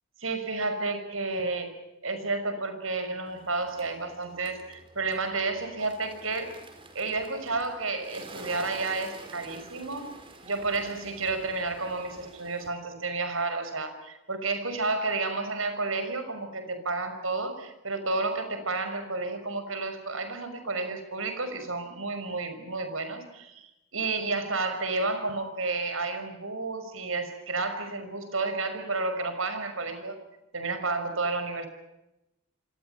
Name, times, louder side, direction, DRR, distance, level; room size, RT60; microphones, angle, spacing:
voice 1, 0.2-1.7 2.0-6.5 6.9-10.1 10.4-30.2 30.5-31.7, right 3 dB, 80° right, 9 dB, 5.8 m, -31 dB
Bird, 3.3-12.7, right 2 dB, 25° right, 4.9 m, -49 dB
28.0 x 26.5 x 5.8 m, 0.90 s
head